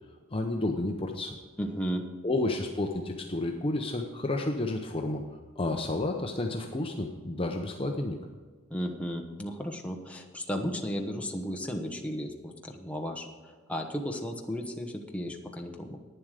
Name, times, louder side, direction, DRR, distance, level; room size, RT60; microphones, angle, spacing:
voice 1, 0.3-1.3 2.2-5.2 5.6-8.2, left 2 dB, 25° left, 2 dB, 0.7 m, -31 dB
voice 2, 1.6-2.0 8.7-16.0, equal, 5° left, 2 dB, 1.0 m, -34 dB
11.0 x 9.6 x 5.0 m, 1.5 s
head